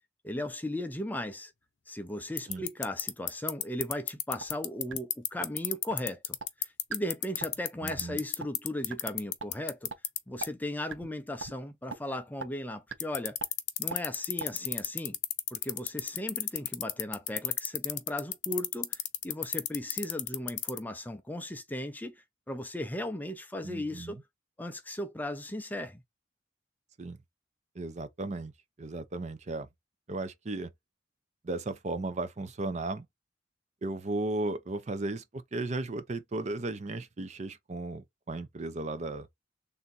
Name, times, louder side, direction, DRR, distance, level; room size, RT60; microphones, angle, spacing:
voice 1, 0.2-1.5 1.9-9.9 10.3-13.4 13.8-15.2 15.5-24.2 24.6-26.0, left 1 dB, 10° left, 0.5 m, -37 dB
sound 1, 2.4-10.2 10.4-10.5 13.0-20.8, left 15 dB, 70° left, 0.7 m, -29 dB
sound 2, 4.4-4.6 4.9-5.0 5.4-5.5 5.9-6.0 6.4-6.5 6.9-7.0 7.4-7.6 7.9-8.0 8.4-8.5 8.9-9.0 9.4-9.5 9.9-10.0 10.4-10.5 10.9-11.1 11.4-11.5 11.9-12.0 12.4-12.5 12.9-13.0 13.4-13.5 13.9-14.0 14.4-14.5, right 5 dB, 90° right, 0.6 m, -38 dB
voice 2, 7.8-8.2 23.6-24.2 27.0-27.2 27.7-28.5 28.8-29.7 30.1-30.7 31.4-33.1 33.8-39.3, right 2 dB, 40° right, 0.5 m, -35 dB
3.5 x 2.6 x 4.0 m
head